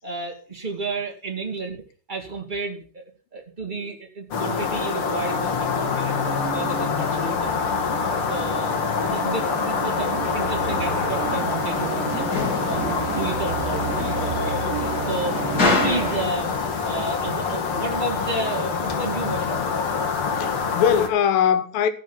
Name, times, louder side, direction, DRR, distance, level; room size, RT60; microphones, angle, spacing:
voice 1, 0.0-1.8 2.1-3.0 3.3-7.5 8.3-12.4 12.7-16.6 16.8-19.6, right 3 dB, 15° right, 1.8 m, -32 dB
sound 1, 4.3-21.1, left 5 dB, 45° left, 2.3 m, -26 dB
sound 2, 4.8-16.2, right 12 dB, 80° right, 2.4 m, -33 dB
sound 3, 11.7-17.1, left 4 dB, 30° left, 3.0 m, -29 dB
voice 2, 20.2-21.9, left 8 dB, 80° left, 2.9 m, -24 dB
15.0 x 6.4 x 7.2 m
omnidirectional pair, 4.0 m